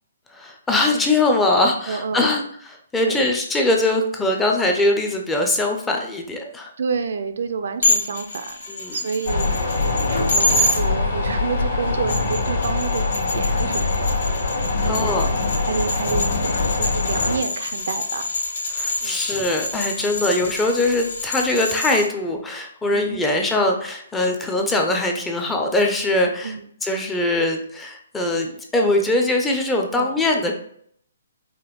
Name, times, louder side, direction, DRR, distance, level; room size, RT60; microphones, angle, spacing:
voice 1, 0.3-6.7 8.7-9.0 14.9-15.3 18.7-26.5 26.8-30.5, left 2 dB, 5° left, 2 dB, 0.4 m, -22 dB
voice 2, 1.9-2.4 3.0-3.3 6.8-8.6 8.9-14.1 14.8-15.2 15.7-16.3 16.8-18.3 19.0-19.2 20.2-20.3 22.9-23.2 26.4-26.7 29.9-30.1, right 5 dB, 60° right, 9 dB, 0.4 m, -29 dB
sound 1, 7.8-10.8 11.9-22.1, left 2 dB, 80° left, 1.4 m, -27 dB
sound 2, 9.3-17.4, left 3 dB, 55° left, 1.3 m, -23 dB
4.9 x 2.1 x 3.0 m, 0.64 s
hypercardioid pair, 165°, 0 cm